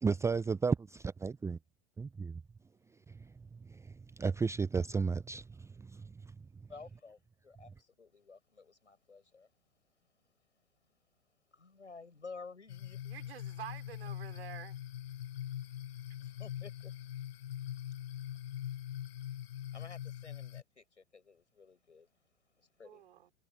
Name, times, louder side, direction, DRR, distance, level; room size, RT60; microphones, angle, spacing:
voice 1, 0.0-1.6 2.0-2.4 3.1-6.1, right 5 dB, 10° right, 0.8 m, -34 dB
voice 2, 6.7-9.5 11.5-13.0 16.2-16.9 19.7-22.1 22.6-23.0, left 4 dB, 80° left, 7.9 m, -52 dB
sound 1, 12.7-20.6, left 11 dB, 60° left, 6.2 m, -42 dB
voice 3, 13.0-14.8 22.8-23.3, right 10 dB, 60° right, 6.0 m, -48 dB
figure-of-eight pair, 95°, 35 cm